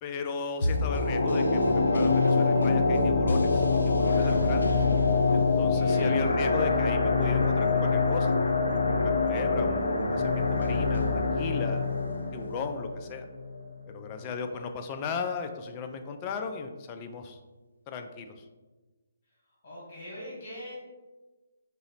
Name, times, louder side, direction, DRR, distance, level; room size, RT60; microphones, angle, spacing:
voice 1, 0.0-4.7 5.3-8.4 8.9-11.9 12.3-13.3 13.9-17.4 17.9-18.5, left 5 dB, 30° left, 6 dB, 0.3 m, -36 dB
sound 1, 0.6-13.7 14.0-14.1, left 3 dB, 85° left, 0.5 m, -25 dB
voice 2, 5.5-6.2 14.5-14.6 19.6-20.7, equal, 50° left, -6 dB, 1.4 m, -43 dB
3.9 x 2.0 x 3.9 m, 1.2 s
hypercardioid pair, 145°, 0 cm